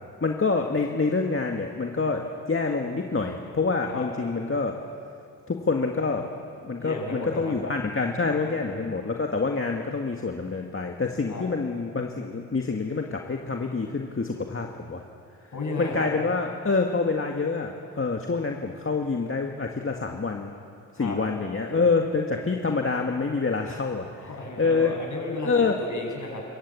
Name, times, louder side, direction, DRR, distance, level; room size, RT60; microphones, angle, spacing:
voice 1, 0.2-4.7 5.5-6.2 6.6-15.0 15.8-20.5 21.0-24.1 24.6-24.9 25.4-25.8, left 4 dB, 35° left, 2 dB, 1.9 m, -26 dB
voice 2, 6.8-7.5 8.4-8.9 11.3-11.5 15.5-16.1 20.9-21.2 24.2-26.4, left 2 dB, 50° left, 1 dB, 7.2 m, -33 dB
29.5 x 14.5 x 8.6 m, 2.5 s
cardioid pair, 60°, 38 cm